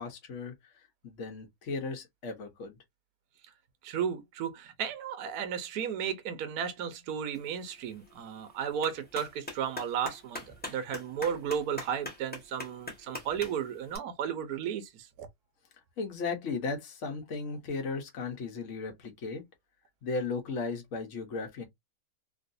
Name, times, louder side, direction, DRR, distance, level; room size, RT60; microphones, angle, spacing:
voice 1, 0.0-2.8 16.0-19.4 20.0-21.6, left 4 dB, 50° left, 1.2 m, -36 dB
voice 2, 3.8-14.9 15.2-15.3, right 8 dB, 70° right, 1.1 m, -34 dB
Clapping, 7.3-14.0, left 2 dB, 5° left, 1.0 m, -44 dB
3.1 x 2.8 x 2.6 m
omnidirectional pair, 1.8 m